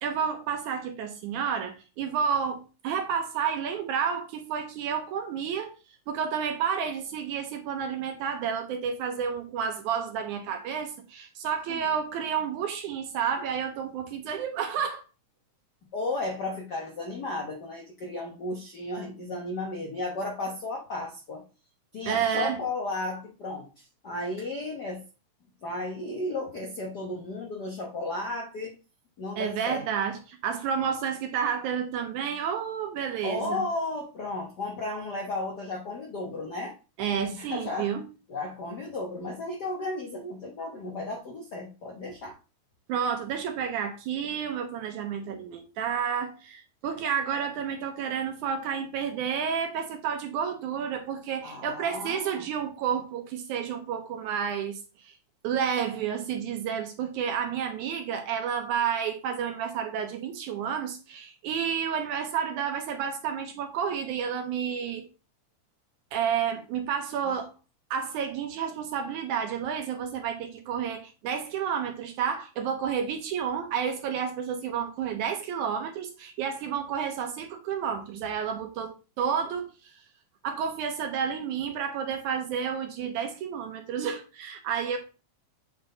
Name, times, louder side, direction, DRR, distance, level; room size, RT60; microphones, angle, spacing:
voice 1, 0.0-5.8 6.1-15.0 22.1-22.6 29.4-33.6 37.0-38.0 42.9-54.8 55.0-55.1 55.4-65.1 66.1-67.5 67.9-79.9 80.4-85.0, right 7 dB, 75° right, 2.1 m, -30 dB
voice 2, 15.9-21.4 21.9-25.0 25.6-28.7 29.2-29.8 33.2-36.7 37.2-37.9 38.3-42.4 51.4-52.4 67.2-67.3, left 2 dB, 80° left, 0.9 m, -34 dB
7.9 x 4.1 x 3.9 m
omnidirectional pair, 3.7 m